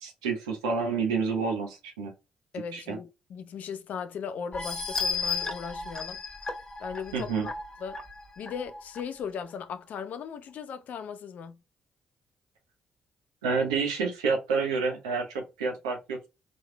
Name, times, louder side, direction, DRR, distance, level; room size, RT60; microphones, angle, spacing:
voice 1, 0.0-2.1 2.7-3.0 7.1-7.5 13.4-16.3, right 4 dB, 85° right, 0.8 m, -29 dB
voice 2, 2.5-6.2 6.8-7.5 7.8-8.0 8.4-11.6, left 7 dB, 60° left, 0.5 m, -38 dB
sound 1, 4.5-9.0 9.5-9.6 10.0-10.1, left 4 dB, 25° left, 1.3 m, -34 dB
4.2 x 3.2 x 2.2 m
hypercardioid pair, 40°, 3 cm